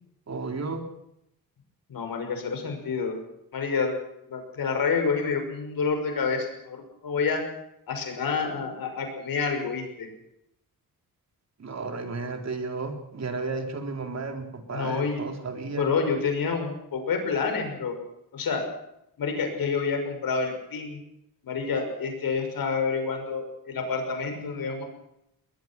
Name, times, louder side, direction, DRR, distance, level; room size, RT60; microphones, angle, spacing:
voice 1, 0.3-0.8 11.6-15.9, right 3 dB, 45° right, 4 dB, 3.8 m, -33 dB
voice 2, 1.9-3.2 3.5-3.9 4.3-7.4 7.9-10.1 14.7-15.2 15.7-17.9 18.3-18.7 19.2-21.0 21.4-24.8, left 5 dB, 70° left, 5 dB, 6.2 m, -28 dB
21.0 x 20.5 x 6.1 m, 0.79 s
cardioid pair, 95°, 37 cm